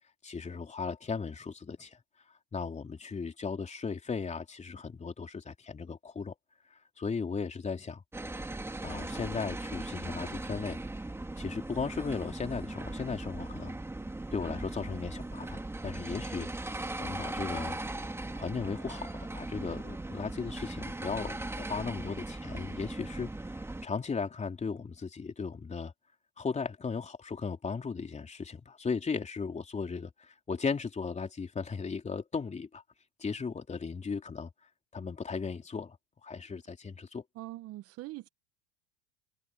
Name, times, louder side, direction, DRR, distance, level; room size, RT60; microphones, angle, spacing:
voice 1, 0.2-2.0 2.5-6.3 7.0-8.0 8.8-10.8 11.4-13.8 14.3-16.5 17.0-17.8 18.4-25.9 26.4-32.8 33.2-34.5 34.9-36.0 36.2-37.2, left 5 dB, 20° left, 3.6 m, -36 dB
sound 1, 8.1-23.9, right 2 dB, 10° right, 2.1 m, -39 dB
voice 2, 37.4-38.3, right 17 dB, 50° right, 1.0 m, -42 dB
hypercardioid pair, 90°, 31 cm